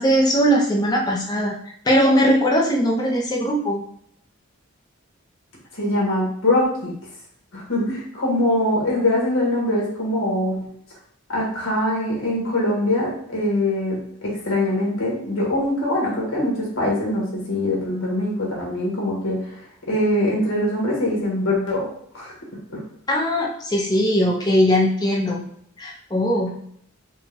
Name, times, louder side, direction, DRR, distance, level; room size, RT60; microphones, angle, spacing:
voice 1, 0.0-3.8 23.1-25.4 25.8-26.6, equal, 20° left, -2 dB, 0.7 m, -20 dB
voice 2, 5.7-7.0 7.5-10.6 11.3-19.6 19.9-22.3 22.7-22.8, left 1 dB, 75° left, -3 dB, 1.6 m, -23 dB
4.5 x 2.4 x 3.4 m, 0.67 s
head